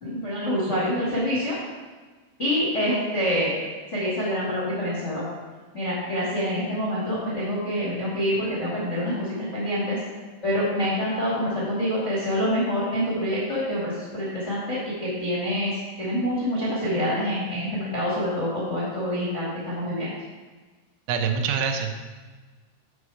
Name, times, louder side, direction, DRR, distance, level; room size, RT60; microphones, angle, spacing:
voice 1, 0.0-1.5 2.4-3.5 3.9-5.2 5.7-10.0 10.4-20.1, equal, 55° left, -8 dB, 0.7 m, -26 dB
voice 2, 21.1-21.9, right 6 dB, 85° right, 5 dB, 3.2 m, -25 dB
8.0 x 5.6 x 4.8 m, 1.4 s
omnidirectional pair, 5.4 m